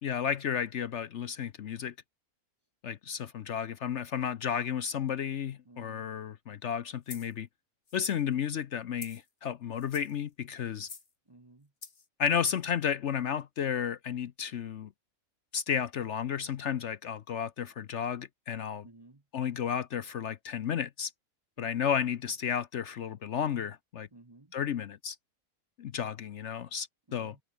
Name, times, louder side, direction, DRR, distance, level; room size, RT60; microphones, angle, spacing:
voice 1, 0.0-1.9 2.8-7.5 7.9-10.9 12.2-14.9 15.5-18.9 19.3-21.1 21.6-24.1 24.5-25.2 25.8-27.3, left 8 dB, 60° left, 0.9 m, -32 dB
voice 2, 5.7-6.1 11.3-11.7 18.8-19.2 21.6-21.8 24.1-24.5 27.1-27.4, right 2 dB, 20° right, 1.0 m, -55 dB
sound 1, 7.1-7.3 7.9-8.2 9.0-9.3 9.8-10.2 10.8-11.1 11.8-12.1, left 4 dB, 45° left, 2.2 m, -47 dB
omnidirectional pair, 1.5 m